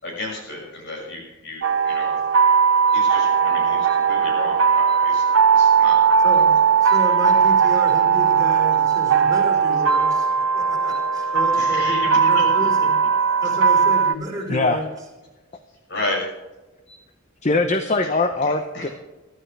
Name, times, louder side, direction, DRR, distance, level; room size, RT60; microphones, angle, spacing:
voice 1, 0.0-2.2 2.9-5.3 5.5-6.0 11.5-12.4 15.9-16.2 16.9-17.0 18.5-18.9, left 1 dB, 60° left, -1 dB, 6.5 m, -32 dB
sound 1, 1.6-14.1, right 6 dB, 75° right, 0.9 m, -18 dB
voice 2, 6.8-10.3 10.5-12.9 13.4-14.9, equal, 15° right, -1 dB, 4.9 m, -31 dB
voice 3, 14.5-14.8 17.4-18.9, left 2 dB, 35° left, 7 dB, 0.9 m, -21 dB
23.0 x 13.0 x 3.4 m, 1.1 s
head